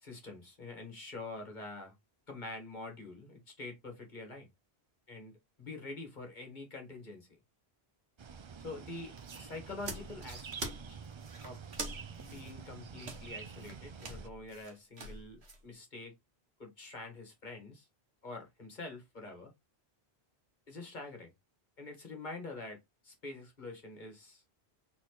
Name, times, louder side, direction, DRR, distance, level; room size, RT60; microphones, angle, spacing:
voice 1, 0.0-1.9 2.3-4.5 5.1-7.3 8.6-11.0 11.4-11.6 12.2-16.1 16.6-17.9 18.2-19.5 20.7-21.3 21.8-24.4, left 2 dB, 45° left, 1.8 m, -46 dB
sound 1, 8.2-14.3, right 6 dB, 50° right, 0.3 m, -48 dB
sound 2, 9.2-15.6, right 2 dB, 80° right, 1.6 m, -45 dB
4.2 x 4.0 x 3.0 m
omnidirectional pair, 1.1 m